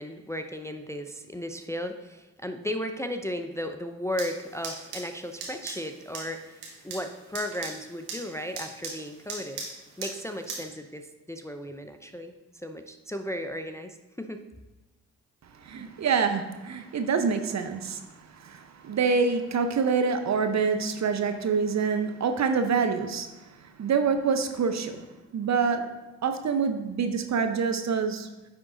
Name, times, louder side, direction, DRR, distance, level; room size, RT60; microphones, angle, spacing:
voice 1, 0.0-6.4 6.8-9.6 10.0-14.4, equal, 10° left, 6 dB, 0.5 m, -35 dB
sound 1, 4.1-10.6, right 4 dB, 85° right, 1.2 m, -41 dB
voice 2, 15.6-23.3 23.6-25.1 25.3-25.9 26.2-28.3, right 5 dB, 45° right, 7 dB, 0.8 m, -26 dB
9.5 x 3.6 x 3.9 m, 1.1 s
hypercardioid pair, 40°, 37 cm